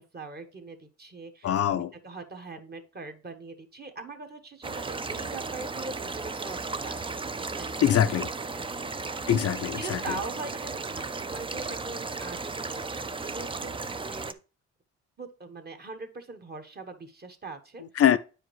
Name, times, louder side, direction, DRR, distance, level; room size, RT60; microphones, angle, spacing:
voice 1, 0.1-8.3 8.5-8.6 9.8-14.3 15.2-17.8, right 3 dB, 35° right, 1.3 m, -42 dB
voice 2, 1.4-1.9 7.8-8.3 9.3-10.0 18.0-18.2, left 10 dB, 50° left, 0.5 m, -23 dB
sound 1, 4.6-14.3, right 3 dB, 15° right, 0.5 m, -35 dB
8.8 x 4.9 x 3.1 m
cardioid pair, 90°, 30 cm